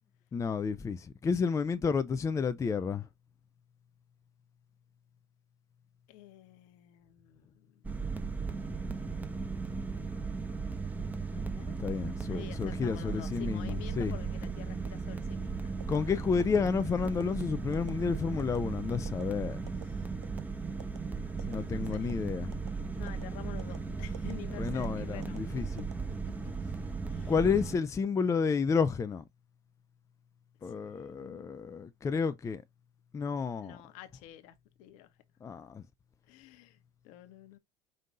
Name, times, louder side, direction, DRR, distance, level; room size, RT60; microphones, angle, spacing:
voice 1, 0.3-3.1 11.8-14.1 15.9-19.6 21.5-22.5 24.6-25.9 27.3-29.2 30.6-32.6 33.1-33.8 35.4-35.8, left 5 dB, 20° left, 0.5 m, -31 dB
voice 2, 6.1-7.9 11.3-11.8 12.3-15.7 19.9-20.1 21.4-22.1 22.9-25.4 26.2-26.5 27.1-27.3 30.6-31.5 33.6-35.1 36.3-37.6, left 13 dB, 60° left, 1.0 m, -50 dB
sound 1, 7.8-27.8, right 4 dB, 10° right, 1.0 m, -36 dB
sound 2, 15.8-16.0 16.4-16.6 17.0-17.3 17.7-17.9 18.4-18.6 19.0-19.2 19.7-19.8 20.2-20.5 20.8-21.0 21.4-21.6 21.9-22.2 22.5-22.7 23.1-23.2 23.6-23.8 24.1-24.3 24.7-24.9 25.2-25.4 25.8-26.4 26.9-27.1, right 8 dB, 90° right, 0.5 m, -48 dB
5.4 x 2.5 x 3.8 m
hypercardioid pair, 75°, 14 cm